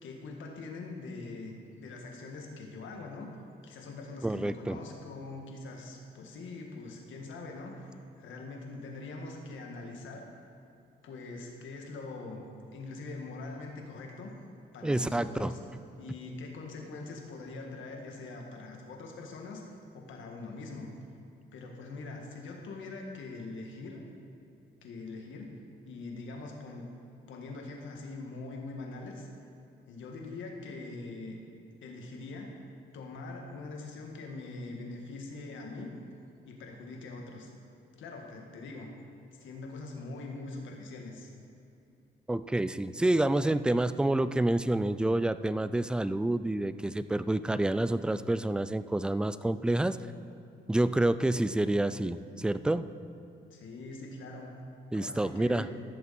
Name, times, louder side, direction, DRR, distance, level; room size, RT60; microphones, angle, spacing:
voice 1, 0.0-3.4 3.6-10.2 11.0-12.5 12.7-14.3 14.7-15.6 16.0-19.6 19.9-20.9 21.5-24.0 24.8-25.5 25.8-26.9 27.3-29.3 29.9-31.4 31.8-32.5 32.9-35.9 36.4-37.5 38.0-38.9 39.4-41.3 53.5-54.5 54.9-55.8, left 3 dB, 75° left, 1 dB, 1.7 m, -43 dB
voice 2, 4.2-4.8 14.8-15.5 42.3-50.0 50.7-52.9 54.9-55.7, right 1 dB, 5° right, 13 dB, 0.3 m, -28 dB
15.0 x 7.0 x 4.2 m, 2.7 s
cardioid pair, 90°, 20 cm